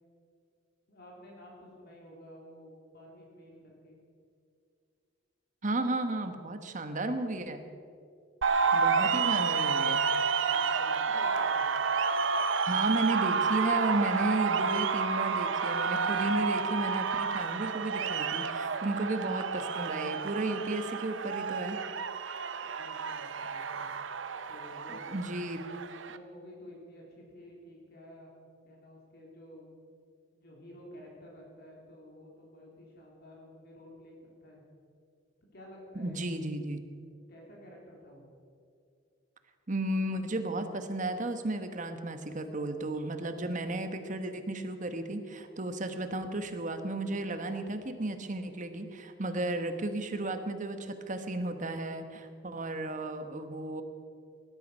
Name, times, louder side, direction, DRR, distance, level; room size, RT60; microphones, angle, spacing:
voice 1, 0.9-4.0 9.0-9.4 10.5-11.7 22.6-23.9 24.5-25.1 25.4-25.6 26.1-28.3 28.6-29.8 30.3-34.6 35.5-36.6 37.3-38.3, left 1 dB, 55° left, -2 dB, 3.3 m, -52 dB
voice 2, 5.6-7.6 8.7-10.0 12.6-21.8 24.9-25.6 35.9-36.8 39.7-53.8, right 2 dB, 40° right, 8 dB, 1.2 m, -33 dB
sound 1, 8.4-26.2, right 5 dB, 75° right, 0.8 m, -30 dB
20.0 x 12.0 x 5.6 m, 2.4 s
head